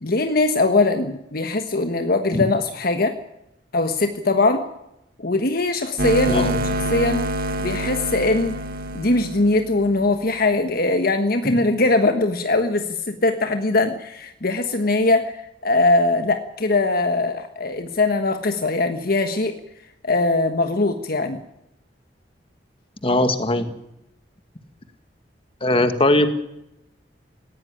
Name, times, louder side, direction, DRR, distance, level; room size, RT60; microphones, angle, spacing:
voice 1, 0.0-3.1 3.7-4.6 5.2-6.5 6.9-7.2 7.6-8.6 8.9-19.6 20.0-21.4, left 2 dB, 55° left, 7 dB, 1.3 m, -21 dB
sound 1, 6.0-10.4, right 1 dB, 55° right, 1.8 m, -27 dB
voice 2, 23.0-23.7 25.6-26.3, left 1 dB, 30° left, 9 dB, 2.1 m, -20 dB
18.5 x 17.0 x 10.0 m, 0.85 s
head